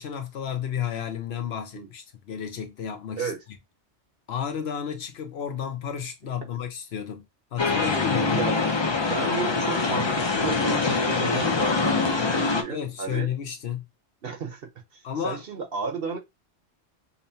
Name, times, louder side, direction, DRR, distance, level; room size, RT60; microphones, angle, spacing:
voice 1, 0.0-3.3 4.3-7.2 7.5-8.4 12.7-13.8 15.0-15.4, left 8 dB, 70° left, 1.0 m, -32 dB
sound 1, 7.6-12.6, left 4 dB, 35° left, 0.5 m, -24 dB
voice 2, 9.0-13.3 14.2-16.2, right 5 dB, 60° right, 1.0 m, -33 dB
5.4 x 2.1 x 2.7 m
omnidirectional pair, 1.2 m